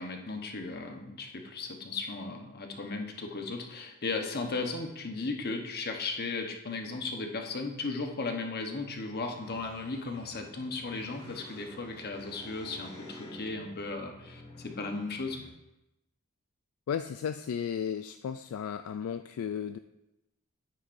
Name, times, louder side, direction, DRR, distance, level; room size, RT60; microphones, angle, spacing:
voice 1, 0.0-15.4, left 3 dB, 45° left, 3 dB, 1.1 m, -36 dB
sound 1, 9.2-15.5, left 1 dB, 25° left, 2.7 m, -50 dB
voice 2, 16.9-19.8, left 8 dB, 70° left, 9 dB, 0.3 m, -34 dB
10.0 x 9.1 x 2.6 m, 0.92 s
head